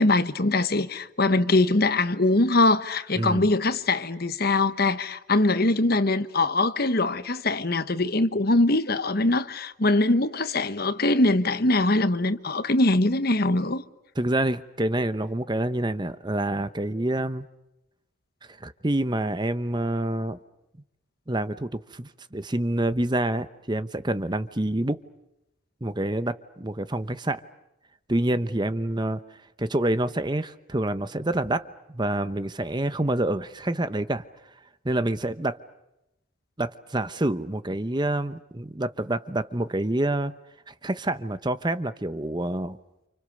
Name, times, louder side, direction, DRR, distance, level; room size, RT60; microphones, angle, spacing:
voice 1, 0.0-13.8, left 2 dB, 50° left, 1.3 m, -22 dB
voice 2, 3.1-3.5 14.2-17.4 18.5-20.4 21.3-25.0 25.8-27.4 28.1-29.2 29.6-34.2 34.8-35.6 36.6-40.3 40.7-42.8, right 1 dB, 20° right, 0.9 m, -27 dB
30.0 x 29.0 x 6.6 m
head